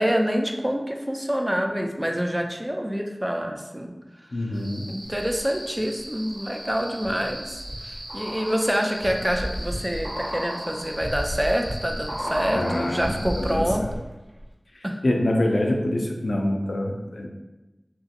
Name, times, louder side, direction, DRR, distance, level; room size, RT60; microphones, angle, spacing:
voice 1, 0.0-4.0 4.3-4.4 4.9-13.8 14.8-15.0, equal, 15° right, 3 dB, 0.3 m, -26 dB
voice 2, 4.3-4.9 12.5-13.9 15.0-17.3, left 1 dB, 80° left, 1 dB, 0.3 m, -25 dB
sound 1, 4.5-13.6, right 1 dB, 80° right, 0.4 m, -40 dB
sound 2, 5.1-5.8 6.3-14.1 14.4-14.5, equal, 50° right, 0.7 m, -34 dB
2.9 x 2.6 x 2.5 m, 1.1 s
wide cardioid pair, 50°, 0 cm